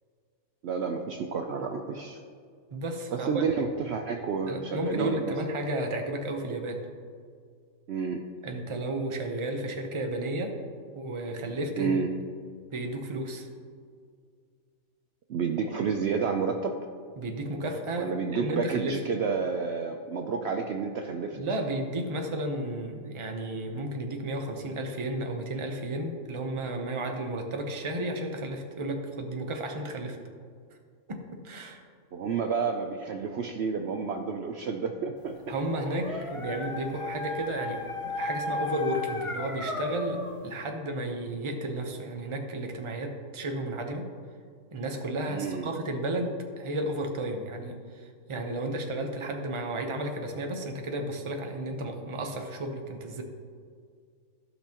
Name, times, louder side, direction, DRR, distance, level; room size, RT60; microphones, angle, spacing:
voice 1, 0.6-2.2 3.1-5.3 7.9-8.2 11.8-12.1 15.3-16.8 18.0-21.4 32.1-35.4 36.1-36.3 45.3-45.8, right 5 dB, 60° right, 4 dB, 0.7 m, -30 dB
voice 2, 2.7-3.4 4.5-6.9 8.4-10.6 10.9-12.0 12.7-13.5 17.2-19.0 21.3-30.2 31.1-31.8 35.5-44.1 44.7-53.2, right 1 dB, 25° right, 3 dB, 0.7 m, -33 dB
Dog, 35.4-40.4, left 2 dB, 35° left, 0.5 m, -35 dB
15.5 x 5.9 x 2.9 m, 2.1 s
omnidirectional pair, 1.4 m